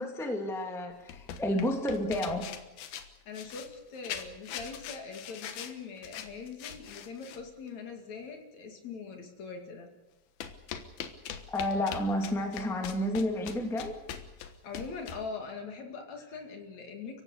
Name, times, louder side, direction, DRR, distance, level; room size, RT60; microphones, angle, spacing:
voice 1, 0.0-2.6 11.5-14.0, left 1 dB, ahead, 2 dB, 1.9 m, -31 dB
sound 1, 0.9-7.5 10.4-15.3, left 8 dB, 85° left, 3.1 m, -42 dB
voice 2, 3.2-9.9 14.6-17.2, left 5 dB, 55° left, 3 dB, 3.4 m, -42 dB
30.0 x 16.0 x 6.6 m, 1.1 s
omnidirectional pair, 4.1 m